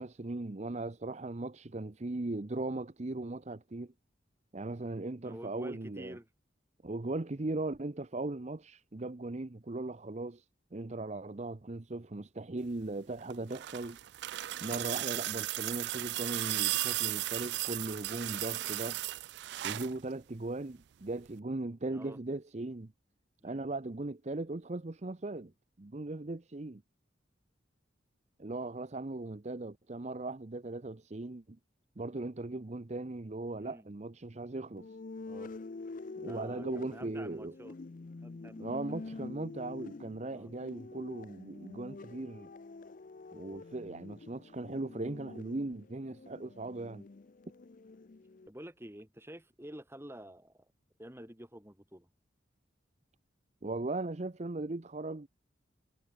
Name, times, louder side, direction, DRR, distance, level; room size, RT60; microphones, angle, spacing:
voice 1, 0.0-3.9 4.5-6.2 6.8-10.4 10.7-14.0 14.6-19.0 19.6-22.9 23.4-25.5 25.8-26.8 28.4-31.6 32.0-34.9 36.2-37.5 38.6-42.5 43.3-47.1 53.6-55.3, right 2 dB, 35° right, 0.7 m, -38 dB
voice 2, 5.2-6.3 21.9-22.2 23.4-23.7 33.6-33.8 35.2-35.5 36.3-37.8 38.2-39.6 40.3-40.5 48.5-50.7 51.0-52.1, right 1 dB, 15° right, 3.0 m, -49 dB
sound 1, 13.2-20.0 21.3-21.4, right 16 dB, 65° right, 0.3 m, -35 dB
sound 2, 34.8-48.5, left 3 dB, 45° left, 0.5 m, -47 dB
head